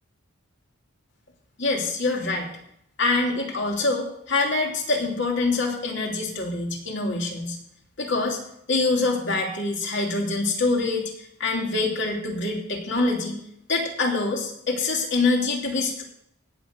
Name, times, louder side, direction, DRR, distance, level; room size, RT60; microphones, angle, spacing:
voice 1, 1.6-2.5 3.0-7.6 8.0-8.4 8.7-13.4 13.7-16.0, left 3 dB, 55° left, 0 dB, 2.8 m, -25 dB
17.5 x 6.2 x 6.8 m, 0.74 s
head